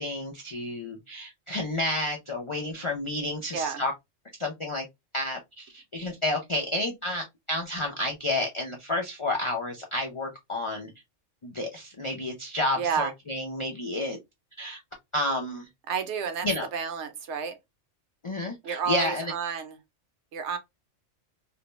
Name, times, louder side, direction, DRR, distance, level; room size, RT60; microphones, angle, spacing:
voice 1, 0.0-3.9 4.4-4.8 5.1-10.9 11.4-14.2 14.6-14.8 15.1-15.7 16.4-16.7 18.2-19.3, left 1 dB, 55° left, 0.3 m, -30 dB
voice 2, 12.8-13.1 15.9-16.5 16.7-17.6 18.6-19.7 20.3-20.6, right 6 dB, 70° right, 0.9 m, -30 dB
2.5 x 2.1 x 2.9 m
omnidirectional pair, 1.3 m